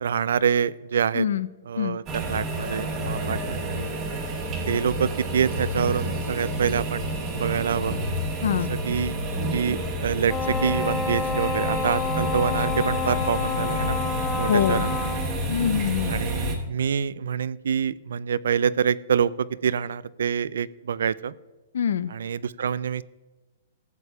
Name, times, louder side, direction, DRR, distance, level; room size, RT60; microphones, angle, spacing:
voice 1, 0.0-1.3 1.7-3.7 4.6-8.0 8.8-9.2 9.5-14.0 14.4-15.1 16.1-21.3 22.1-23.0, right 7 dB, 75° right, 19 dB, 0.3 m, -26 dB
voice 2, 1.1-1.5 1.8-2.0 8.4-8.7 14.5-14.9 15.5-16.2 21.7-22.1, left 8 dB, 70° left, 15 dB, 0.5 m, -24 dB
sound 1, 2.1-16.6, right 1 dB, 15° right, 1.0 m, -29 dB
Wind instrument woodwind instrument, 10.3-15.3, left 6 dB, 15° left, 0.4 m, -29 dB
15.0 x 8.2 x 2.3 m, 1.2 s
hypercardioid pair, 180°, 0 cm